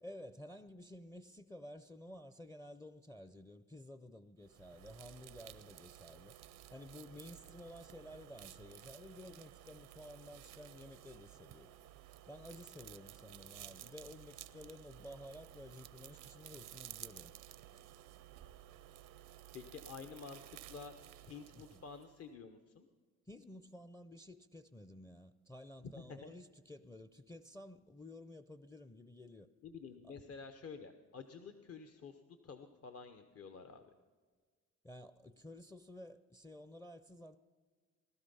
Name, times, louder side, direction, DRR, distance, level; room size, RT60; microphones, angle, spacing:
voice 1, 0.0-11.7 12.3-17.3 21.5-21.8 23.3-29.5 30.0-30.2 34.8-37.4, left 1 dB, 10° left, 0.5 m, -53 dB
sound 1, 4.4-22.3, right 13 dB, 85° right, 0.7 m, -55 dB
voice 2, 19.5-20.9 21.2-22.9 25.8-26.3 29.6-33.9, left 5 dB, 50° left, 1.0 m, -50 dB
19.0 x 12.5 x 5.5 m
cardioid pair, 90°, 30 cm